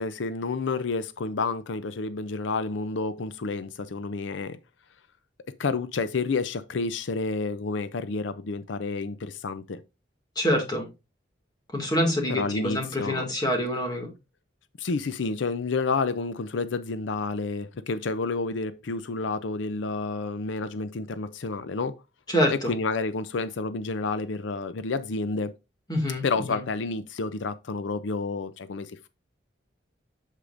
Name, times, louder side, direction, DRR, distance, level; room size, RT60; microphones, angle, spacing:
voice 1, 0.0-4.6 5.6-9.8 12.3-13.2 14.8-21.9 22.6-25.5 26.2-29.1, left 4 dB, 85° left, 0.5 m, -30 dB
voice 2, 10.4-10.9 11.7-14.1 22.3-22.8 25.9-26.6, equal, 20° left, 2.1 m, -26 dB
8.2 x 7.4 x 2.5 m
head